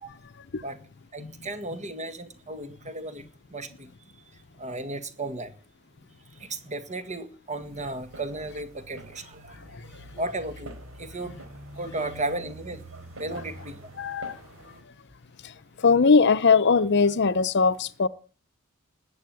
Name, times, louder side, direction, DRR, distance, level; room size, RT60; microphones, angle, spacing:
voice 1, 1.1-3.2 3.5-3.9 4.6-5.5 6.4-9.6 10.2-11.4 11.8-12.8 13.2-13.9, right 2 dB, 35° right, 1.9 m, -34 dB
sound 1, 7.6-14.8, right 1 dB, 80° right, 4.4 m, -46 dB
voice 2, 14.0-14.4 15.8-18.1, left 4 dB, 55° left, 0.7 m, -20 dB
20.0 x 8.6 x 7.8 m
head